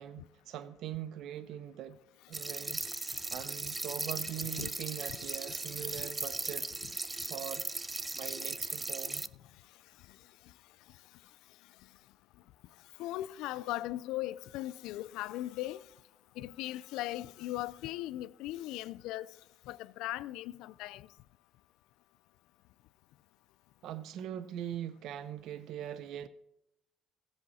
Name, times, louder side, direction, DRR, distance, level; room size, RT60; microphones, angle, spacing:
voice 1, 0.0-2.0 2.3-6.7 7.2-9.3 23.8-26.3, right 11 dB, 75° right, 0.5 m, -42 dB
sound 1, 2.3-9.3, right 2 dB, 15° right, 0.4 m, -38 dB
voice 2, 4.5-6.1 6.8-6.9 13.0-15.9 16.4-19.4 19.7-21.1, left 15 dB, 90° left, 0.3 m, -39 dB
15.5 x 7.9 x 4.1 m
cardioid pair, 110°, 0 cm